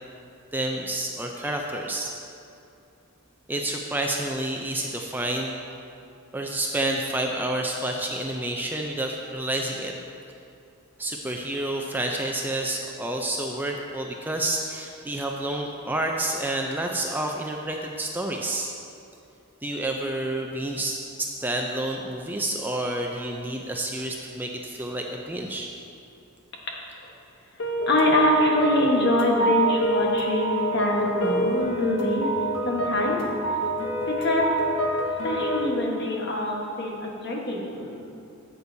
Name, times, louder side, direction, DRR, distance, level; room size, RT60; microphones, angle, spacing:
voice 1, 0.5-2.1 3.5-5.5 6.3-9.9 11.0-18.7 19.6-25.7, right 1 dB, 10° right, 1 dB, 0.4 m, -29 dB
sound 1, 27.6-35.7, right 1 dB, 70° left, 0.9 m, -26 dB
voice 2, 27.9-32.3 32.6-33.3 34.1-34.5 35.2-38.0, left 1 dB, 50° left, -1 dB, 1.3 m, -24 dB
11.5 x 8.3 x 2.7 m, 2.6 s
head